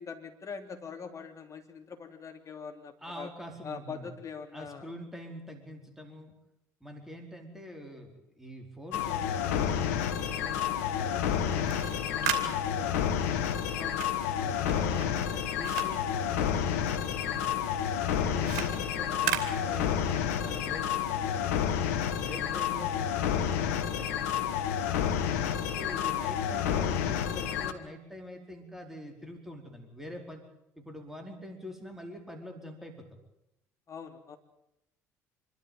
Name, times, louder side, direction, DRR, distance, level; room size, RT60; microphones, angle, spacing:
voice 1, 0.0-3.3 3.6-4.9 13.8-14.0 18.4-18.8 33.9-34.4, left 5 dB, 40° left, 5 dB, 3.2 m, -43 dB
voice 2, 3.0-4.1 4.5-6.3 6.8-13.1 14.3-17.8 18.2-21.6 22.0-24.6 25.3-30.4 30.8-33.1, equal, 5° right, 3 dB, 4.7 m, -45 dB
sound 1, 8.9-27.7, left 9 dB, 80° left, 1.3 m, -30 dB
sound 2, 11.5-17.0 17.3-20.3, right 11 dB, 75° right, 2.8 m, -38 dB
26.5 x 12.5 x 9.2 m, 0.84 s
hypercardioid pair, 60°, 9 cm